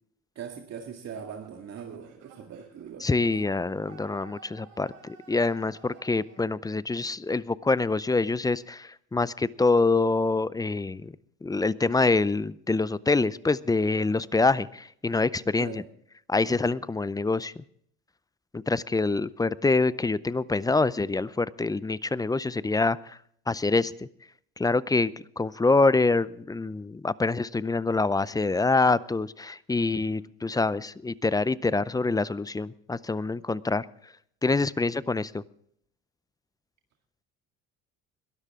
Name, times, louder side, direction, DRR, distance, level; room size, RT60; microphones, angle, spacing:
voice 1, 0.4-3.5 15.6-15.8, right 7 dB, 50° right, 2 dB, 2.0 m, -41 dB
sound 1, 1.0-6.4, right 6 dB, 80° right, 6.3 m, -53 dB
voice 2, 3.0-11.1 11.4-15.8 16.3-17.6 18.5-23.2 23.5-23.9 24.6-33.9 34.4-35.4, left 3 dB, 10° left, 19 dB, 0.5 m, -25 dB
22.0 x 12.5 x 3.7 m, 0.66 s
supercardioid pair, 90°, 34 cm